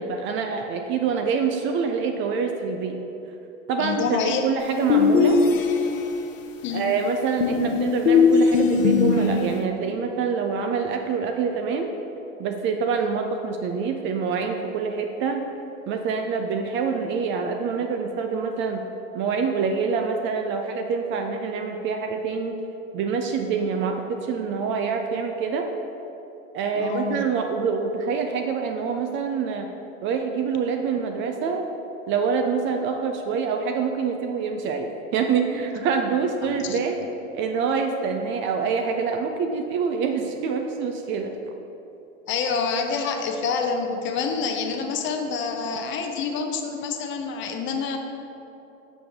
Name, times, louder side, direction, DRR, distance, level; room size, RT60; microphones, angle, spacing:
voice 1, 0.0-3.0 3.7-5.4 6.7-11.9 12.4-15.5 15.9-18.8 19.1-22.6 22.9-25.7 26.5-29.7 30.0-31.6 32.1-37.0 37.3-41.3, right 5 dB, 35° right, 4 dB, 0.4 m, -26 dB
voice 2, 3.8-4.4 6.6-6.9 26.7-27.2 36.4-36.8 42.3-48.0, left 5 dB, 30° left, 4 dB, 0.6 m, -27 dB
sound 1, 4.9-6.2 7.4-9.6, left 5 dB, 80° left, 0.6 m, -19 dB
6.1 x 6.1 x 3.5 m, 2.9 s
hypercardioid pair, 100°, 38 cm